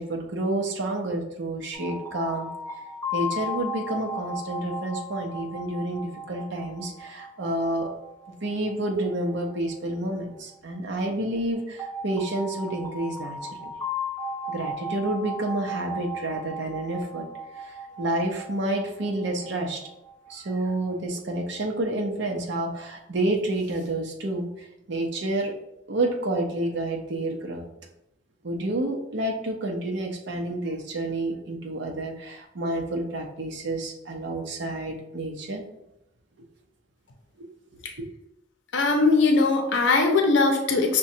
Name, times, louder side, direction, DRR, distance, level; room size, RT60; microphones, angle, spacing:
voice 1, 0.0-2.5 3.1-7.9 8.4-13.7 14.5-17.3 17.6-19.8 20.3-25.5 25.9-27.7 28.4-35.6, right 1 dB, 65° right, 1 dB, 0.6 m, -29 dB
sound 1, 1.7-10.5 11.8-20.9, left 1 dB, 20° left, 1.4 m, -36 dB
voice 2, 38.7-41.0, left 3 dB, 80° left, 3 dB, 0.6 m, -20 dB
5.9 x 2.2 x 2.7 m, 0.83 s
head